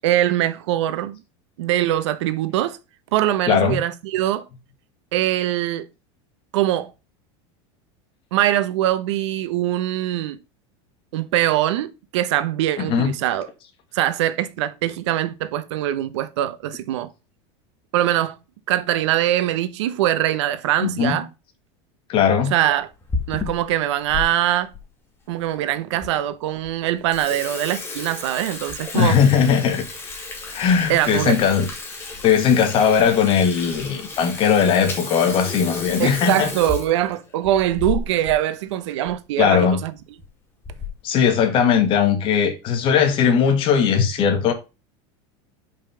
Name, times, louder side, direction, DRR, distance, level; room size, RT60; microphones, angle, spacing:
voice 1, 0.0-1.2 1.6-2.8 3.1-4.4 5.1-5.9 6.5-6.9 8.3-10.4 11.1-13.5 13.9-17.1 17.9-18.4 18.7-21.3 22.5-22.9 23.3-24.7 25.3-29.2 30.9-31.4 36.0-39.9, right 13 dB, 80° right, 0.9 m, -22 dB
voice 2, 3.5-3.8 12.8-13.1 20.8-21.2 22.1-22.5 28.9-29.8 30.5-31.7 32.2-36.5 39.4-39.8 41.0-44.5, left 7 dB, 35° left, 1.6 m, -18 dB
Water tap faucet / Sink (filling or washing), 22.8-24.3 24.7-24.8 25.5-25.6 26.0-26.1 26.5-26.7 27.0-38.4 38.7-38.8 39.1-39.2 40.0-40.3 40.6-41.1, left 4 dB, 15° left, 1.9 m, -33 dB
5.7 x 5.2 x 5.7 m
supercardioid pair, 155°, 15 cm